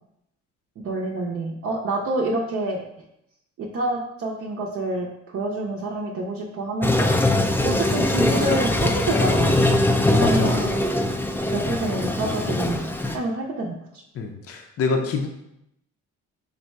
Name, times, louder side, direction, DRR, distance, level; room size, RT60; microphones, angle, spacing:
voice 1, 0.8-2.8 3.6-7.3 7.6-9.6 10.1-11.0 11.5-13.8, right 2 dB, 50° right, -2 dB, 0.6 m, -27 dB
Toilet flush, 6.8-13.2, left 1 dB, 10° left, 0.3 m, -22 dB
voice 2, 10.2-10.5 14.1-15.3, left 4 dB, 50° left, 3 dB, 0.6 m, -25 dB
3.9 x 2.1 x 4.5 m, 0.81 s
cardioid pair, 90°, 30 cm